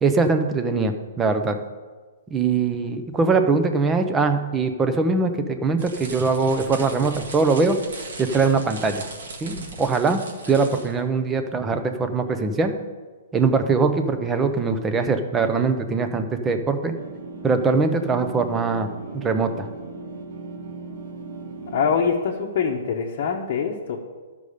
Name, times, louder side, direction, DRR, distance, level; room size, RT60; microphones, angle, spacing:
voice 1, 0.0-1.6 2.3-7.8 8.2-9.1 9.4-10.2 10.5-12.7 13.3-16.9 17.4-18.9 19.1-19.7, right 4 dB, 10° right, 7 dB, 0.6 m, -22 dB
sound 1, 5.8-11.0, right 2 dB, 80° right, 1.9 m, -38 dB
sound 2, 16.9-22.0, right 3 dB, 45° right, 0.9 m, -37 dB
voice 2, 21.7-24.0, left 6 dB, 45° left, -1 dB, 0.9 m, -24 dB
12.5 x 5.3 x 5.0 m, 1.4 s
hypercardioid pair, 165°, 0 cm